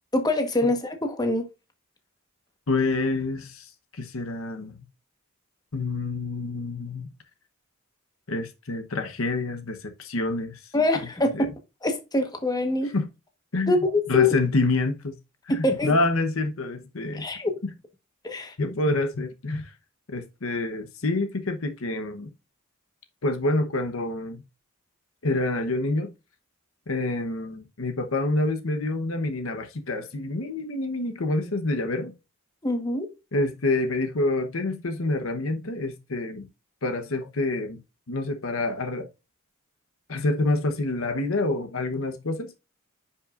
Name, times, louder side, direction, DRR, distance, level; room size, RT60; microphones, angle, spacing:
voice 1, 0.1-1.5 10.7-11.5 11.8-12.9 13.7-14.3 15.5-16.0 17.1-17.5 18.2-18.5 32.6-33.1, left 2 dB, 20° left, 1.2 m, -24 dB
voice 2, 2.7-3.7 4.0-4.8 5.7-7.1 8.3-10.6 11.3-11.5 12.9-13.1 13.5-13.7 14.1-15.2 15.5-17.3 18.6-19.7 20.1-22.3 23.2-24.4 25.2-26.1 26.9-32.1 33.3-36.5 36.8-37.8 38.1-39.1 40.1-42.5, left 2 dB, 70° left, 1.0 m, -27 dB
10.0 x 5.6 x 2.5 m
head